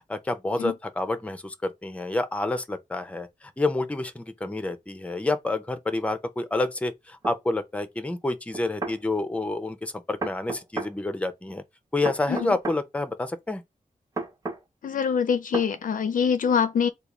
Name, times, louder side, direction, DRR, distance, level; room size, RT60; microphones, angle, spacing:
voice 1, 0.1-11.6 11.9-13.6, left 2 dB, 10° left, 0.5 m, -28 dB
sound 1, 7.2-7.4 8.5-9.0 10.2-10.9 12.1-12.8 14.2-14.6 15.5-15.7, right 3 dB, 25° right, 0.8 m, -32 dB
voice 2, 14.8-16.9, left 7 dB, 80° left, 0.5 m, -24 dB
3.5 x 2.3 x 3.0 m
wide cardioid pair, 120°, 14 cm